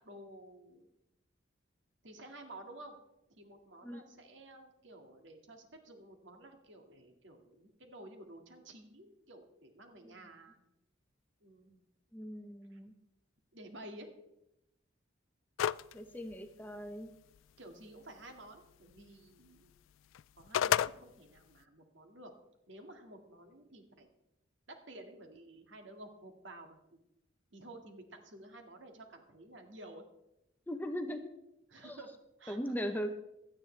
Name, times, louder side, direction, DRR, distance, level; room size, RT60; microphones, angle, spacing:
voice 1, 0.0-0.9 2.0-3.0 3.3-10.6 11.4-11.9 12.7-12.8 13.5-14.1 17.6-19.7 20.4-22.3 22.7-24.1 24.7-27.0 27.5-30.0 31.7-32.1 32.4-32.6 32.9-33.0, right 1 dB, 70° right, 4 dB, 2.0 m, -52 dB
voice 2, 12.1-12.9 15.9-17.1 30.7-31.3 31.8-32.0 32.5-33.1, equal, 10° left, 6 dB, 0.8 m, -39 dB
sound 1, 15.6-15.9 16.3-16.4 20.2-20.9, left 10 dB, 80° left, 0.3 m, -29 dB
17.0 x 12.0 x 3.3 m, 0.86 s
head